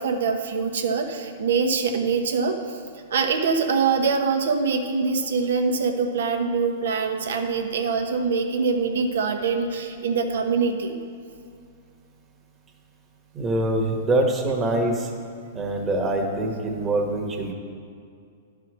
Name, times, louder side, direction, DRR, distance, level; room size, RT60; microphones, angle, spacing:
voice 1, 0.0-2.8 3.1-11.0, right 5 dB, 80° right, 5 dB, 1.0 m, -24 dB
voice 2, 13.3-15.1 15.5-17.5, right 1 dB, 20° right, 0 dB, 1.2 m, -24 dB
11.0 x 4.8 x 6.2 m, 2.4 s
hypercardioid pair, 135°, 0 cm